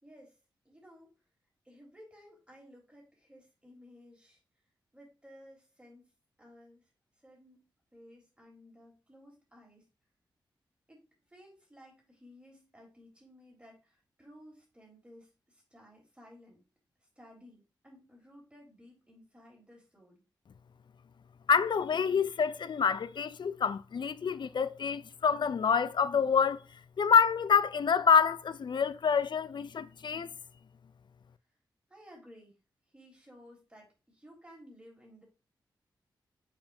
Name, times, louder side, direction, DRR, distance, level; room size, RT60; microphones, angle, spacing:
voice 1, 0.0-0.4 0.6-1.1 1.6-4.4 4.9-6.1 6.4-6.9 7.2-7.6 7.9-9.9 10.9-16.6 17.0-20.2 31.9-32.6 32.9-35.2, equal, 10° right, 3.6 m, -56 dB
voice 2, 21.5-26.6 27.0-30.3, left 6 dB, 60° left, 0.5 m, -27 dB
6.9 x 5.6 x 2.7 m
cardioid pair, 50°, 9 cm